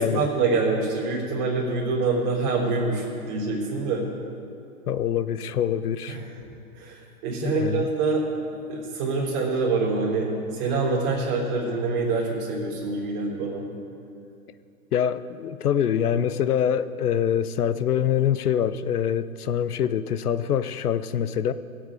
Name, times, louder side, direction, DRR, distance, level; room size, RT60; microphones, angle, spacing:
voice 1, 0.0-4.0 6.1-6.2 6.7-8.2 8.7-13.6, right 3 dB, 30° right, -4 dB, 3.4 m, -25 dB
voice 2, 4.9-6.2 7.4-7.9 14.9-21.5, left 9 dB, 85° left, 14 dB, 0.7 m, -25 dB
20.0 x 7.9 x 4.9 m, 2.5 s
hypercardioid pair, 155°, 44 cm